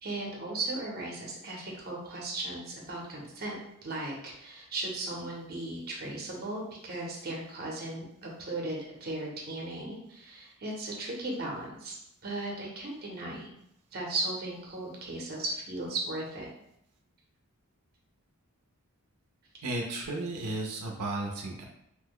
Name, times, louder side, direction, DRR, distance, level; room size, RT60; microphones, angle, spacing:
voice 1, 0.0-12.0 12.2-13.5 13.9-16.5, right 2 dB, 45° right, -1 dB, 0.7 m, -36 dB
voice 2, 19.6-21.7, right 2 dB, 90° right, 0 dB, 0.6 m, -34 dB
2.9 x 2.1 x 3.6 m, 0.78 s
head